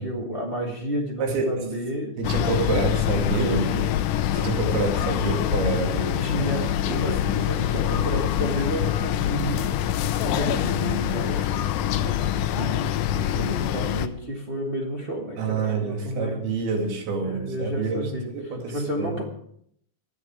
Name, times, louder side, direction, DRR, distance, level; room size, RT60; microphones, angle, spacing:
voice 1, 0.0-2.2 2.4-3.9 6.2-16.4 17.2-19.2, right 1 dB, 45° right, -2 dB, 0.7 m, -31 dB
voice 2, 1.2-1.6 2.2-3.7 4.3-7.1 15.4-19.1, right 4 dB, 80° right, 3 dB, 4.1 m, -28 dB
sound 1, 2.2-14.1, left 11 dB, 80° left, 1.8 m, -25 dB
24.0 x 8.2 x 4.7 m, 0.69 s
omnidirectional pair, 4.5 m